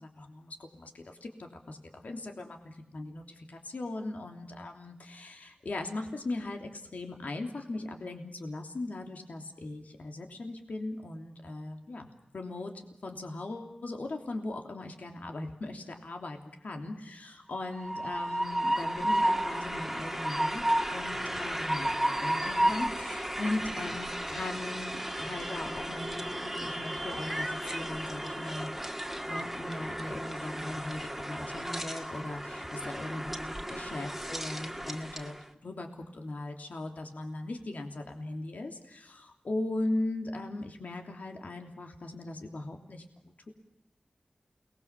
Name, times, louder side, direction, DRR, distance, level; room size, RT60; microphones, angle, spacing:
voice 1, 0.0-12.1 12.3-12.7 13.0-20.6 20.9-28.7 29.2-43.5, left 2 dB, 85° left, 4 dB, 3.1 m, -39 dB
Train, 17.6-35.4, right 1 dB, 5° right, 1.9 m, -33 dB
29.5 x 20.5 x 7.1 m, 0.80 s
wide cardioid pair, 70°, 3 cm